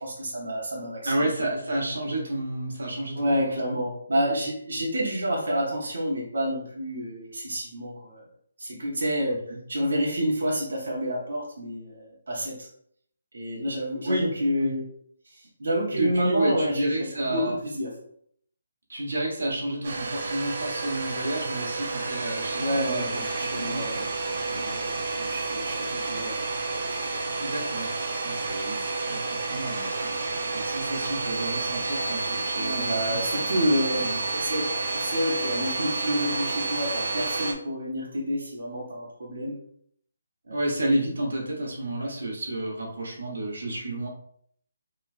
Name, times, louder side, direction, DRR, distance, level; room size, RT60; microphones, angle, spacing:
voice 1, 0.0-1.1 3.1-8.2 8.6-9.4 9.7-12.7 13.3-14.8 15.4-16.9 17.3-17.9 22.6-26.4 32.6-34.1 34.4-39.6 40.5-40.6, equal, 65° right, -4 dB, 1.1 m, -29 dB
voice 2, 1.0-3.3 3.7-3.8 9.5-9.6 14.0-14.3 14.6-14.7 15.9-17.6 18.9-23.2 23.6-23.9 27.4-27.9 28.2-33.2 34.0-34.4 40.5-44.1, right 1 dB, 90° right, -2 dB, 1.1 m, -30 dB
Domestic sounds home sounds, 19.8-37.5, right 3 dB, 40° right, 0.5 m, -30 dB
3.1 x 3.0 x 2.5 m, 0.65 s
hypercardioid pair, 180°, 0 cm